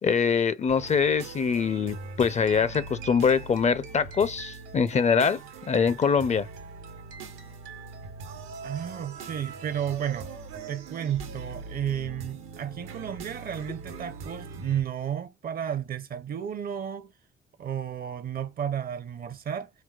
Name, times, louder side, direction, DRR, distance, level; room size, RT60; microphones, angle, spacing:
voice 1, 0.0-5.4 5.7-6.5, left 6 dB, 35° left, 0.4 m, -24 dB
sound 1, 0.7-14.8, right 4 dB, 90° right, 0.9 m, -42 dB
sound 2, 1.9-8.7, right 9 dB, 70° right, 1.1 m, -48 dB
voice 2, 8.6-10.3 10.7-17.1 17.6-19.7, right 9 dB, 50° right, 0.6 m, -32 dB
4.5 x 2.1 x 2.3 m
cardioid pair, 90°, 20 cm